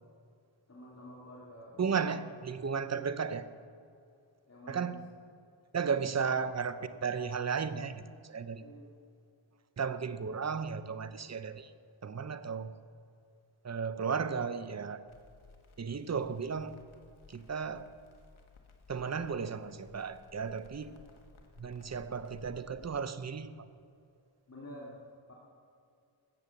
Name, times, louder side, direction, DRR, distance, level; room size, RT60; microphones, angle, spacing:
voice 1, 0.7-2.2 2.9-3.0 4.5-5.0 5.8-5.9 6.2-6.3 8.6-8.9 24.5-25.0 25.3-25.4, left 1 dB, 30° left, -5 dB, 2.4 m, -49 dB
voice 2, 1.8-3.4 4.7-5.0 5.7-8.6 9.8-11.7 12.0-12.8 13.6-15.0 15.8-16.7 17.3-17.9 18.9-21.0 21.6-23.7, right 6 dB, 35° right, 12 dB, 0.7 m, -34 dB
Crackle, 15.1-22.9, left 4 dB, 70° left, 1.5 m, -59 dB
14.0 x 8.0 x 7.1 m, 2.4 s
cardioid pair, 60°, 50 cm